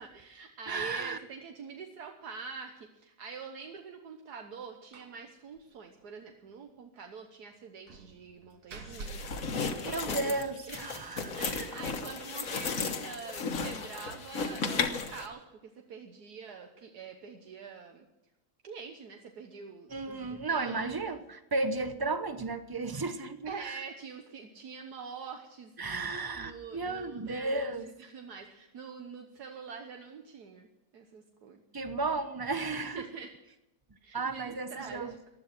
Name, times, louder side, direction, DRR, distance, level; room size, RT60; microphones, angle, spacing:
voice 1, 0.0-10.3 10.7-10.8 11.3-15.4 15.9-18.1 18.6-20.9 23.4-25.7 26.4-30.7 30.9-31.6 32.9-33.3 34.0-35.2, right 5 dB, 75° right, 4 dB, 1.7 m, -45 dB
voice 2, 0.7-1.2 9.8-11.4 19.9-23.8 25.8-27.9 31.7-33.1 34.1-35.1, right 3 dB, 20° right, 10 dB, 0.5 m, -34 dB
Slam, 4.9-5.2 5.5-5.6 6.0-6.1 7.9-10.5, right 3 dB, 60° right, 1.6 m, -47 dB
sound 1, 8.9-15.3, left 5 dB, 55° left, 1.6 m, -34 dB
15.5 x 12.0 x 6.0 m, 0.91 s
omnidirectional pair, 1.7 m